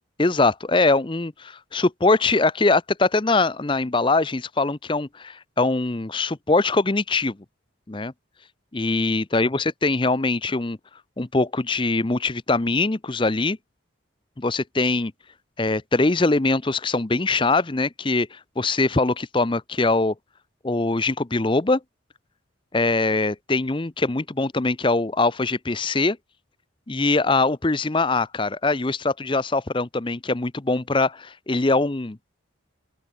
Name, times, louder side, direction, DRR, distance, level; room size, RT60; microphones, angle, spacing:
voice 1, 0.2-7.4 7.9-8.1 8.7-10.8 11.2-13.6 14.4-15.1 15.6-20.1 20.6-21.8 22.7-26.2 26.9-32.2, left 3 dB, 25° left, 0.6 m, -22 dB
open air
head